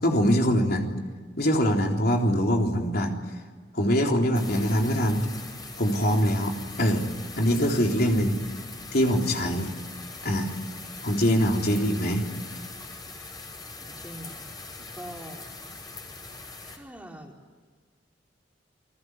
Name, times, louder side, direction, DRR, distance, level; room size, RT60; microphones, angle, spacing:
voice 1, 0.0-0.9 1.4-3.1 3.7-5.3 5.8-6.5 6.8-7.1 7.4-8.4 8.9-9.7 10.2-10.5 11.0-12.3, equal, 60° left, 1 dB, 3.8 m, -23 dB
sound 1, 4.3-16.8, left 3 dB, 25° left, 4.8 m, -41 dB
voice 2, 13.8-14.5 15.0-15.5 16.6-17.3, right 1 dB, 10° right, 0 dB, 4.1 m, -43 dB
28.5 x 21.0 x 9.7 m, 1.5 s
head